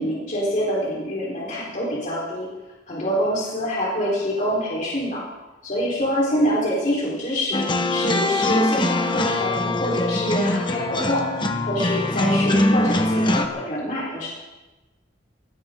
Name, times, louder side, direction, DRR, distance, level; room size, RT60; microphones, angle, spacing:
voice 1, 0.0-2.5 2.9-5.2 5.6-7.6 7.9-11.2 11.6-14.3, equal, 45° left, -5 dB, 4.2 m, -25 dB
sound 1, 7.5-13.5, left 1 dB, 25° left, 1.2 m, -22 dB
20.5 x 18.0 x 3.8 m, 1.2 s
head